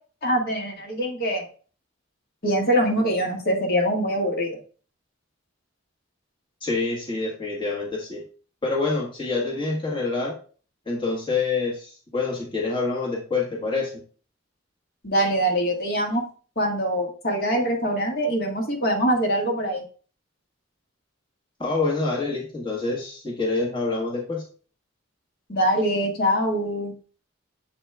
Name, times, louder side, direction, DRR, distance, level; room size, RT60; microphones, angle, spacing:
voice 1, 0.2-1.4 2.4-4.6 15.0-16.2 16.5-19.8 25.5-26.9, equal, 50° left, 0 dB, 1.7 m, -23 dB
voice 2, 6.6-8.2 8.6-10.4 10.8-13.9 21.6-24.4, left 3 dB, 25° left, -3 dB, 1.5 m, -26 dB
7.4 x 4.2 x 3.4 m, 0.39 s
head